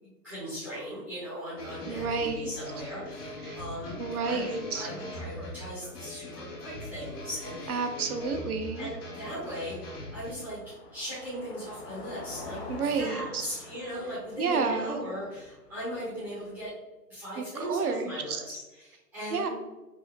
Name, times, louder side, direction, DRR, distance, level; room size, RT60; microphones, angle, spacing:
voice 1, 0.0-4.0 4.2-7.9 8.8-12.6 13.0-16.7 17.1-19.5, equal, 10° right, -11 dB, 0.6 m, -38 dB
sound 1, 1.6-10.3, left 1 dB, 75° left, 1.5 m, -41 dB
voice 2, 1.9-2.5 3.4-3.6 4.0-4.9 7.7-8.9 12.7-13.4 14.4-15.1 17.4-18.4 19.3-19.5, right 4 dB, 65° right, 7 dB, 0.7 m, -30 dB
Car passing by, 8.5-16.7, left 3 dB, 40° left, 0.7 m, -47 dB
5.3 x 2.0 x 3.2 m, 1.1 s
hypercardioid pair, 145°, 48 cm